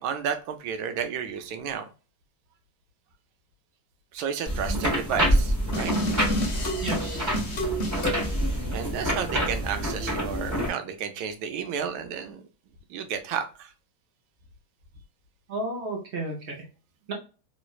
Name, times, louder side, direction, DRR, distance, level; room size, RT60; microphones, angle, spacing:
voice 1, 0.0-1.8 4.1-5.9 6.3-6.5 7.8-8.1 8.7-12.4 12.9-13.7, right 7 dB, 85° right, 7 dB, 1.4 m, -32 dB
sound 1, 4.5-10.7, equal, 15° right, 1.4 m, -27 dB
sound 2, 5.7-8.4, equal, 45° left, 1.0 m, -29 dB
voice 2, 6.8-7.2 15.5-16.7 17.1-17.2, right 2 dB, 55° right, 0 dB, 0.7 m, -33 dB
3.2 x 3.1 x 2.3 m, 0.34 s
omnidirectional pair, 2.2 m